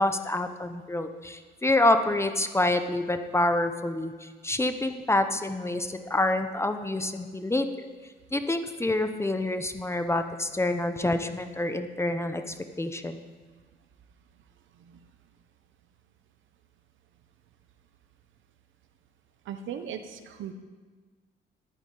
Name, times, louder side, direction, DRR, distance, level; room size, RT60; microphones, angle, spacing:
voice 1, 0.0-7.9 8.3-13.2, left 2 dB, 15° left, 8 dB, 0.7 m, -27 dB
voice 2, 19.5-20.5, right 8 dB, 75° right, 8 dB, 0.8 m, -38 dB
11.5 x 9.0 x 3.9 m, 1.5 s
cardioid pair, 90°, 20 cm